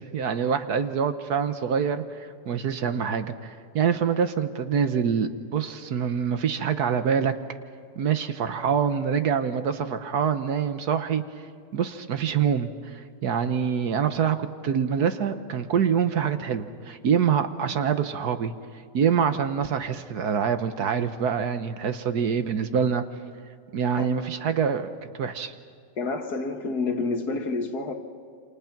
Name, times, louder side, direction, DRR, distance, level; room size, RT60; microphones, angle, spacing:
voice 1, 0.1-7.3 8.0-11.2 11.7-14.4 14.6-18.5 18.9-23.0 23.7-25.5, right 7 dB, 65° right, 9 dB, 1.4 m, -25 dB
voice 2, 26.0-27.9, left 3 dB, 60° left, 5 dB, 2.1 m, -28 dB
28.5 x 27.0 x 5.9 m, 2.2 s
omnidirectional pair, 1.9 m